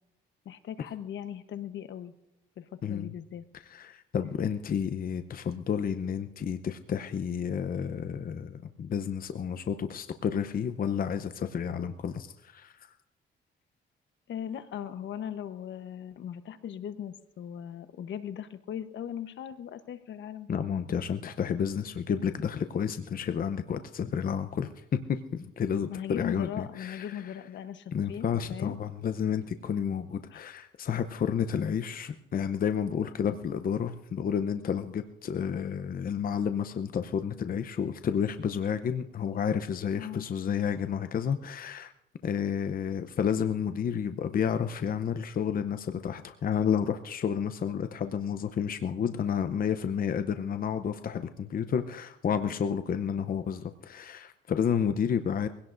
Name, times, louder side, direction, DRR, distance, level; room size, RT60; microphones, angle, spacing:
voice 1, 0.4-2.1 2.6-3.5 14.3-20.8 25.9-28.8 30.3-30.5 31.5-31.6 40.0-40.3, left 9 dB, 70° left, 10 dB, 1.0 m, -39 dB
voice 2, 2.8-3.1 3.7-12.9 20.5-27.3 27.9-41.9 42.2-55.5, left 7 dB, 45° left, 9 dB, 0.7 m, -31 dB
22.5 x 17.0 x 2.6 m, 0.93 s
cardioid pair, 90°, 20 cm